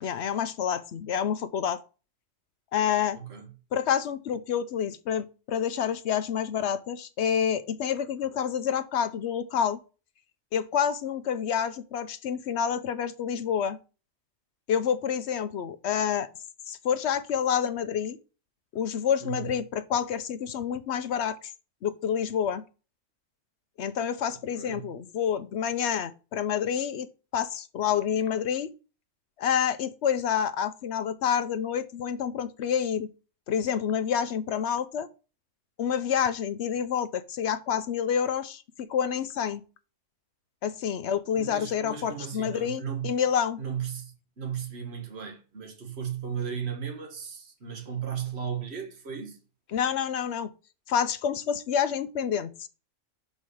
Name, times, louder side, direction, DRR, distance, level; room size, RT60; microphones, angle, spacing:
voice 1, 0.0-1.8 2.7-3.2 3.7-9.8 10.5-13.8 14.7-16.3 16.7-18.2 18.7-21.4 21.8-22.6 23.8-27.1 27.3-28.7 29.4-33.1 33.5-35.1 35.8-39.6 40.6-43.6 49.7-50.5 50.9-52.7, left 8 dB, 60° left, 0.8 m, -28 dB
voice 2, 3.1-3.5 19.2-19.6 24.5-24.9 41.3-43.1 43.6-49.4, right 8 dB, 50° right, 1.8 m, -35 dB
5.4 x 5.4 x 6.2 m
omnidirectional pair, 1.4 m